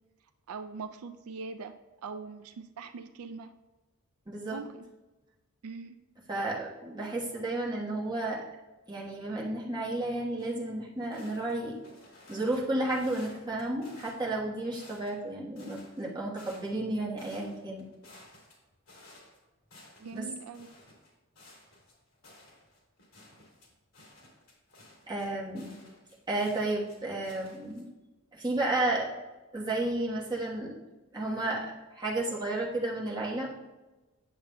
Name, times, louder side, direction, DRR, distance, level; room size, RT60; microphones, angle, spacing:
voice 1, 0.5-1.7 2.0-3.5 4.5-4.9 5.6-6.0 20.0-20.8, right 4 dB, 80° right, 9 dB, 0.4 m, -42 dB
voice 2, 4.3-4.6 6.3-8.4 8.9-11.8 12.3-17.9 20.1-20.2 25.1-25.7 26.3-27.9 28.3-29.1 29.5-30.8 31.1-33.5, right 2 dB, 20° right, -5 dB, 1.2 m, -32 dB
sound 1, 10.4-10.5 11.0-12.6 12.9-14.3 14.6-15.2 15.6-16.9 17.2-19.4 19.7-20.2 20.5-27.0 27.2-27.8, left 2 dB, 80° left, 2.3 m, -55 dB
8.7 x 6.8 x 2.2 m, 1.1 s
head